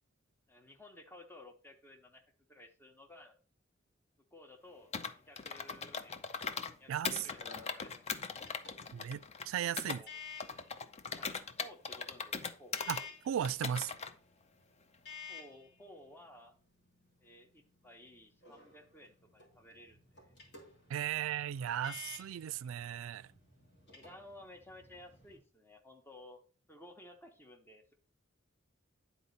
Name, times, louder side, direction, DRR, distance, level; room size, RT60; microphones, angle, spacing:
voice 1, 0.5-2.2 2.5-3.4 4.3-8.4 9.9-10.1 11.2-12.8 15.3-16.5 17.2-20.3 23.8-26.4 26.7-27.9, left 1 dB, 10° left, 1.0 m, -56 dB
Computer keyboard, 4.9-6.7 7.0-10.0 10.4-13.0 13.4-14.1, left 5 dB, 30° left, 0.5 m, -40 dB
sound 1, 6.8-25.4, left 6 dB, 55° left, 2.9 m, -55 dB
voice 2, 6.9-7.3 8.9-10.0 12.9-13.9 20.9-23.3, right 9 dB, 75° right, 0.3 m, -36 dB
10.0 x 4.1 x 4.1 m
head